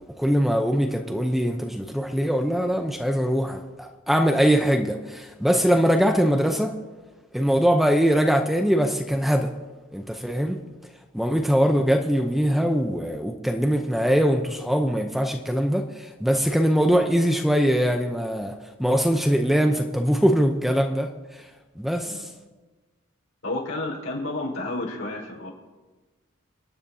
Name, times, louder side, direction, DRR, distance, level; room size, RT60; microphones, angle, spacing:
voice 1, 0.2-6.7 7.3-9.5 9.9-10.6 11.1-18.5 18.8-21.5 21.8-22.3, equal, ahead, 4 dB, 0.6 m, -22 dB
voice 2, 23.4-25.5, left 2 dB, 75° left, -3 dB, 4.6 m, -31 dB
27.5 x 10.0 x 2.8 m, 1.2 s
head